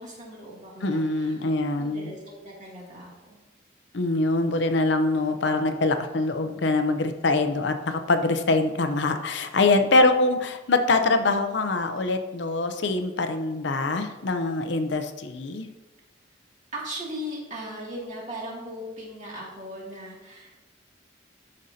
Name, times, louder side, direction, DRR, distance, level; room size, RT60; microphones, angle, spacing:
voice 1, 0.0-1.4 1.8-3.1 16.7-20.7, equal, 40° right, -4 dB, 2.4 m, -38 dB
voice 2, 0.8-2.1 3.9-15.7, left 2 dB, 65° left, 7 dB, 0.6 m, -24 dB
12.5 x 5.3 x 2.8 m, 1.1 s
head